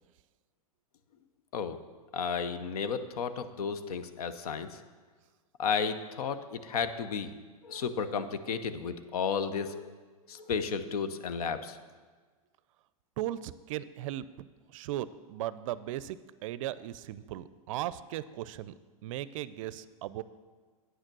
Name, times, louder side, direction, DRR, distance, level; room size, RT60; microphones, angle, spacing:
voice 1, 2.1-4.8 5.6-7.3 7.6-9.9 10.3-11.8, left 6 dB, 80° left, 11 dB, 0.8 m, -33 dB
voice 2, 13.2-18.7 19.0-20.2, right 13 dB, 60° right, 16 dB, 0.5 m, -37 dB
9.2 x 6.6 x 6.0 m, 1.4 s
hypercardioid pair, 130°, 19 cm